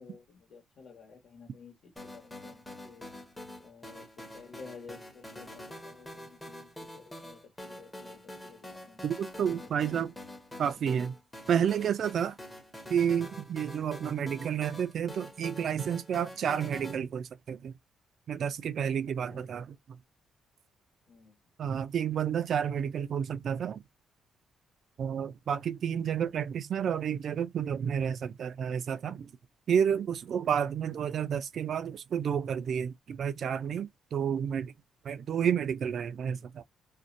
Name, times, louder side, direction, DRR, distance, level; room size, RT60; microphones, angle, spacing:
voice 1, 0.0-3.0 3.6-9.0 9.6-10.1 19.3-19.5 21.1-21.3, left 5 dB, 60° left, 1.2 m, -52 dB
sound 1, 2.0-17.0, left 1 dB, 15° left, 0.8 m, -46 dB
voice 2, 9.0-10.1 10.6-11.1 11.5-12.4 12.9-17.7 18.3-19.8 21.6-23.8 25.0-29.3 29.7-34.7 35.0-36.6, right 8 dB, 60° right, 0.3 m, -30 dB
2.5 x 2.1 x 2.5 m
cardioid pair, 90°, 0 cm